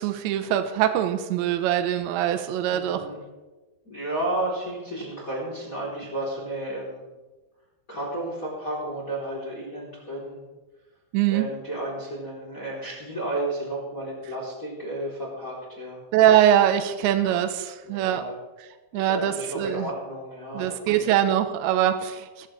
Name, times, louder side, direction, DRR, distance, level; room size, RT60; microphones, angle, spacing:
voice 1, 0.0-3.1 11.1-11.5 16.1-18.2 18.9-19.9 20.5-22.5, right 11 dB, 80° right, 8 dB, 3.1 m, -22 dB
voice 2, 2.7-3.2 3.8-7.0 7.9-10.4 11.3-16.0 17.8-18.3 18.9-21.1, right 1 dB, 20° left, -3 dB, 3.3 m, -32 dB
21.0 x 14.5 x 3.3 m, 1.2 s
omnidirectional pair, 5.4 m